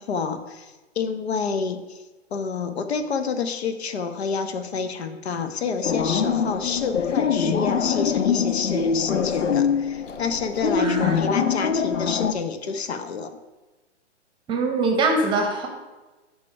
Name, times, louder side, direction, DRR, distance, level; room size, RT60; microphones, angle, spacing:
voice 1, 0.0-2.0 2.3-13.4, left 5 dB, 60° left, 8 dB, 0.9 m, -28 dB
sound 1, 5.8-12.3, left 6 dB, 85° left, 0.7 m, -23 dB
voice 2, 10.8-11.2 14.5-15.7, right 3 dB, 15° right, 2 dB, 0.9 m, -23 dB
10.5 x 3.6 x 5.3 m, 1.2 s
hypercardioid pair, 130°, 36 cm